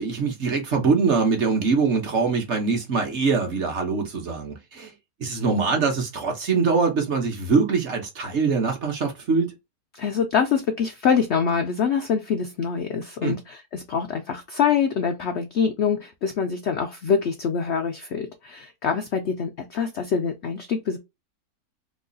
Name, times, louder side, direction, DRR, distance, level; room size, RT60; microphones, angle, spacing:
voice 1, 0.0-4.9 5.2-9.5 13.2-13.4, right 4 dB, 55° right, 0.9 m, -23 dB
voice 2, 9.9-21.0, left 6 dB, 90° left, 0.5 m, -25 dB
3.1 x 2.3 x 3.7 m
omnidirectional pair, 1.8 m